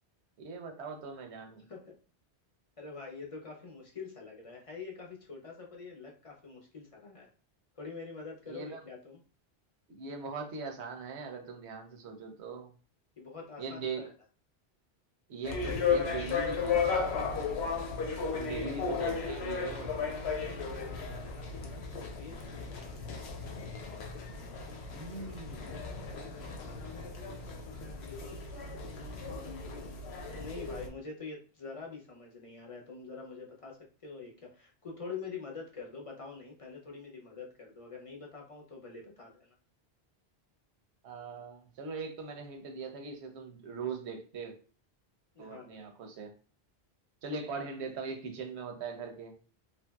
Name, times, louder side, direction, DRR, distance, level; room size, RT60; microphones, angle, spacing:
voice 1, 0.4-1.6 8.5-8.8 9.9-12.7 13.6-14.1 15.3-17.3 18.3-20.0 24.9-25.8 41.0-44.6 45.4-46.3 47.2-49.3, right 4 dB, 90° right, 4 dB, 0.9 m, -41 dB
voice 2, 2.8-7.3 7.8-9.2 13.2-14.1 18.2-18.6 18.9-19.0 21.1-21.9 22.2-23.2 25.1-27.1 28.0-28.1 28.5-30.0 30.4-39.5 45.3-45.9, left 4 dB, 40° left, 0 dB, 0.5 m, -46 dB
sound 1, 15.4-30.9, left 5 dB, 80° left, 0.9 m, -35 dB
3.0 x 2.6 x 2.2 m, 0.38 s
omnidirectional pair, 1.1 m